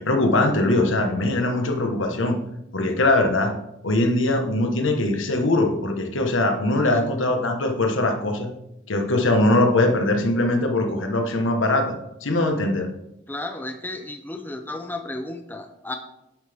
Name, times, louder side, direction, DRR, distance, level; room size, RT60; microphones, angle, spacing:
voice 1, 0.0-2.4 2.7-3.5 3.8-8.5 8.9-11.9 12.2-12.9, left 2 dB, 85° left, 4 dB, 1.4 m, -21 dB
voice 2, 13.3-16.0, left 2 dB, 10° left, 6 dB, 0.7 m, -33 dB
9.7 x 7.8 x 3.6 m, 0.86 s
head